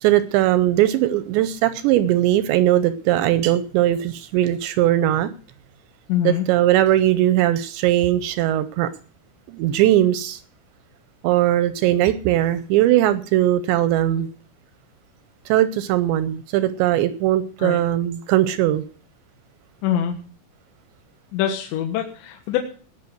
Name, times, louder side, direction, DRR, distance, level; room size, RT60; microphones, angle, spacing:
voice 1, 0.0-5.3 6.2-8.9 9.5-10.4 11.2-14.3 15.5-18.8, right 13 dB, 80° right, 14 dB, 2.6 m, -19 dB
voice 2, 6.1-6.5 17.6-17.8 19.8-20.1 21.3-22.6, left 10 dB, 70° left, 4 dB, 3.1 m, -23 dB
18.5 x 6.5 x 7.9 m, 0.43 s
omnidirectional pair, 5.9 m